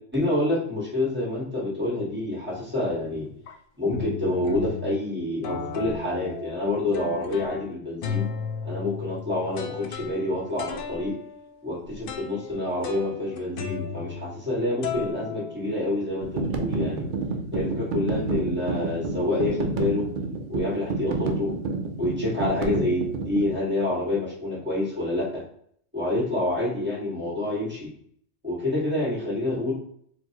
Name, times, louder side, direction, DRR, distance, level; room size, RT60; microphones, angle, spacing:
voice 1, 0.1-3.3 3.8-8.3 8.6-11.1 11.6-17.0 17.5-20.1 20.5-21.5 22.0-25.4 25.9-27.9 28.4-29.7, left 2 dB, 10° right, -5 dB, 1.5 m, -27 dB
sound 1, 2.5-2.8 3.5-3.6 3.9-5.0 5.4-7.7 8.0-14.5 14.8-16.2, left 6 dB, 65° left, 0.5 m, -35 dB
sound 2, 16.2-23.5, right 3 dB, 70° right, 0.4 m, -29 dB
4.4 x 2.7 x 2.8 m, 0.63 s
omnidirectional pair, 1.4 m